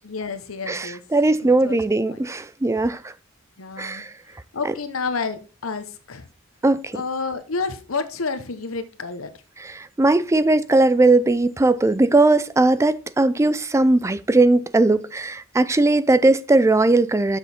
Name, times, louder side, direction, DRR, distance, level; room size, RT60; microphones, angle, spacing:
voice 1, 0.0-1.0 1.4-1.8 2.1-2.3 3.6-4.0 4.5-6.3 6.9-9.3, left 4 dB, 90° left, 1.0 m, -30 dB
voice 2, 0.7-3.1 3.8-4.1 6.6-6.9 9.6-17.4, right 2 dB, 15° right, 0.4 m, -19 dB
7.2 x 6.2 x 4.3 m
head